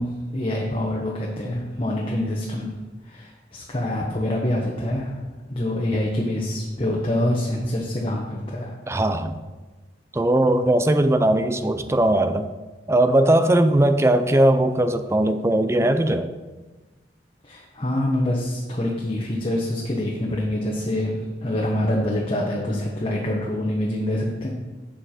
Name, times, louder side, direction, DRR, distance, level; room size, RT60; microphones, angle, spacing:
voice 1, 0.0-2.7 3.0-5.2 5.5-8.7 17.4-24.5, left 1 dB, 30° left, -2 dB, 1.1 m, -25 dB
voice 2, 8.9-9.4 10.1-12.5 12.9-16.3, right 1 dB, 15° right, 10 dB, 0.5 m, -19 dB
8.7 x 7.2 x 4.4 m, 1.2 s
head